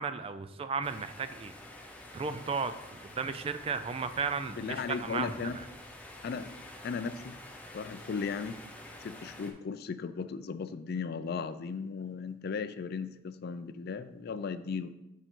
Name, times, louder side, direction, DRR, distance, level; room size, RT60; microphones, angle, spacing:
voice 1, 0.0-1.5 2.1-2.7 3.2-4.8 5.0-5.3, right 5 dB, 30° right, 11 dB, 0.3 m, -34 dB
sound 1, 0.8-9.5, left 1 dB, 5° left, 0.6 m, -48 dB
voice 2, 4.6-5.6 6.2-6.5 6.8-7.4 7.7-8.6 9.0-14.9, left 5 dB, 55° left, 12 dB, 0.4 m, -36 dB
6.5 x 4.9 x 3.7 m, 0.87 s
head